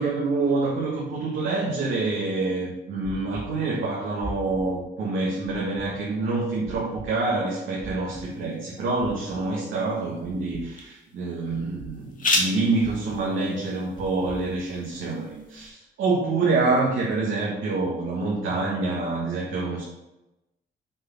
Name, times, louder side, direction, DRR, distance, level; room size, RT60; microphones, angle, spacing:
voice 1, 0.0-19.8, right 3 dB, 80° right, -5 dB, 1.8 m, -26 dB
sound 1, 3.0-3.4 4.2-4.6 5.5-5.9 6.7-7.0 7.8-8.2 9.0-9.4 10.2-10.6 11.5-11.9 12.8-13.2 14.0-14.4, equal, 15° right, 1.5 m, -39 dB
sound 2, 8.2-15.7, left 2 dB, 40° left, 1.6 m, -34 dB
6.3 x 4.0 x 5.9 m, 0.95 s
cardioid pair, 90°, 20 cm